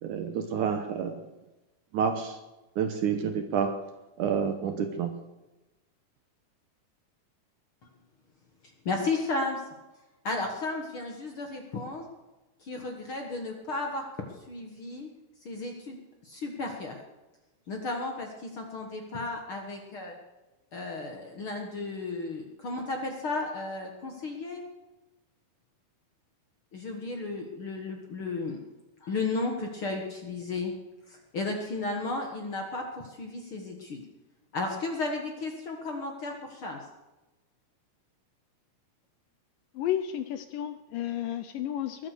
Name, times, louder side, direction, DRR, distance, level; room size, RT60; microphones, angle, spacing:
voice 1, 0.0-1.2 1.9-2.4 2.8-3.7 4.2-5.1, right 7 dB, 70° right, 7 dB, 2.0 m, -29 dB
voice 2, 8.8-9.6 10.2-12.0 12.6-15.1 15.4-16.0 16.2-17.0 17.7-20.2 20.7-24.6 26.7-28.6 29.0-30.7 31.1-34.0 34.5-36.8, left 3 dB, 50° left, 2 dB, 1.6 m, -34 dB
voice 3, 39.7-42.1, left 11 dB, 75° left, 10 dB, 2.2 m, -32 dB
21.0 x 8.7 x 6.6 m, 1.1 s
omnidirectional pair, 4.4 m